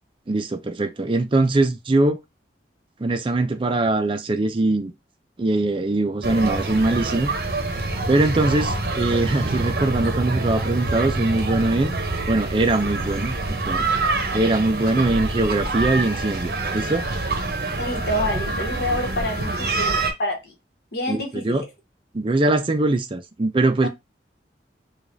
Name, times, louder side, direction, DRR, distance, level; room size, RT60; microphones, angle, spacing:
voice 1, 0.3-2.2 3.0-4.9 5.4-7.3 8.1-11.9 12.3-13.4 13.6-13.8 14.3-17.1 21.1-21.6 22.1-23.9, right 2 dB, 30° right, 0.4 m, -22 dB
sound 1, 6.2-20.1, right 2 dB, 55° right, 0.7 m, -26 dB
voice 2, 17.8-20.5 20.9-21.7 23.8-23.9, left 1 dB, 60° left, 1.2 m, -27 dB
4.8 x 2.4 x 2.6 m
head